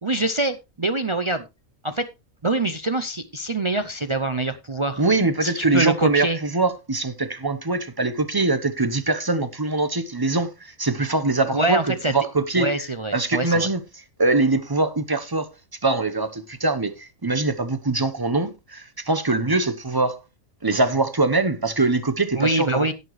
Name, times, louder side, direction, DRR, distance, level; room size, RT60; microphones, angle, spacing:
voice 1, 0.0-1.4 1.8-2.0 2.4-5.0 5.4-6.4 11.5-12.1 12.6-13.7 22.3-22.9, right 2 dB, 50° right, 0.3 m, -24 dB
voice 2, 5.0-12.7 13.1-15.5 15.8-20.2 20.6-22.9, right 3 dB, 20° right, 0.7 m, -23 dB
17.0 x 6.7 x 3.1 m
omnidirectional pair, 1.5 m